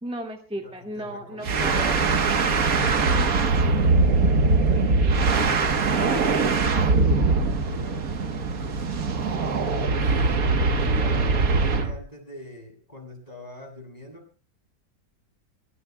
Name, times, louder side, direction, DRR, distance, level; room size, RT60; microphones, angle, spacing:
voice 1, 0.0-2.0, right 1 dB, 5° right, 1 dB, 2.0 m, -34 dB
voice 2, 0.6-2.0 2.7-5.4 5.9-6.6 7.6-8.2 9.2-14.3, left 2 dB, 20° left, 1 dB, 8.2 m, -43 dB
granny start, 1.4-12.0, right 3 dB, 60° right, 1.7 m, -22 dB
24.0 x 21.0 x 2.3 m, 0.40 s
omnidirectional pair, 1.8 m